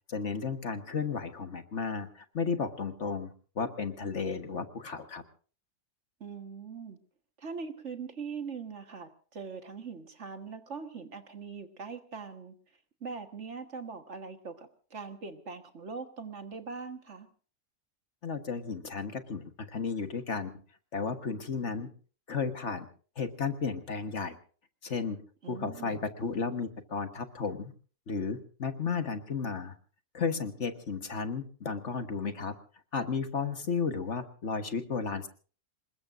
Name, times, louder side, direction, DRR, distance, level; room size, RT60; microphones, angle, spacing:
voice 1, 0.1-5.2 18.2-20.5 20.9-21.9 22.3-22.9 23.2-24.4 24.8-25.2 25.5-27.7 28.1-29.8 30.1-32.5 32.9-35.3, left 5 dB, 55° left, 8 dB, 1.6 m, -33 dB
voice 2, 6.2-7.0 7.4-12.6 13.0-17.3 25.4-25.9, right 5 dB, 55° right, 7 dB, 1.8 m, -41 dB
27.0 x 21.0 x 2.6 m, 0.39 s
omnidirectional pair, 1.5 m